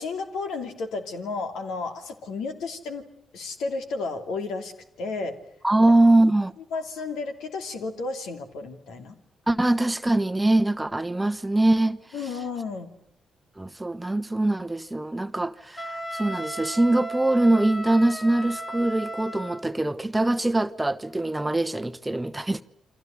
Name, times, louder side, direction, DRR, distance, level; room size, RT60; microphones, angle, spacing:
voice 1, 0.0-3.0 3.3-4.7 5.0-5.4 6.7-9.2 12.1-12.9, left 4 dB, 65° left, 2.8 m, -32 dB
voice 2, 5.6-6.5 9.5-12.0 13.6-22.6, right 2 dB, 15° right, 1.1 m, -23 dB
Wind instrument woodwind instrument, 15.8-19.7, right 1 dB, 25° left, 2.9 m, -35 dB
29.0 x 25.5 x 6.5 m
figure-of-eight pair, 40°, 0 cm